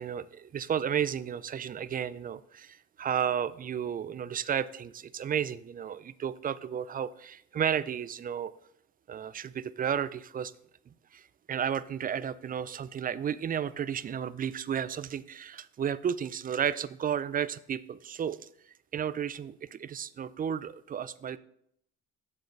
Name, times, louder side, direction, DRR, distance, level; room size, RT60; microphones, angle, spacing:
voice 1, 0.0-8.5 9.1-10.5 11.1-18.4 18.9-21.4, right 8 dB, 30° right, 17 dB, 0.4 m, -33 dB
7.6 x 7.6 x 3.3 m, 0.72 s
supercardioid pair, 75°, 29 cm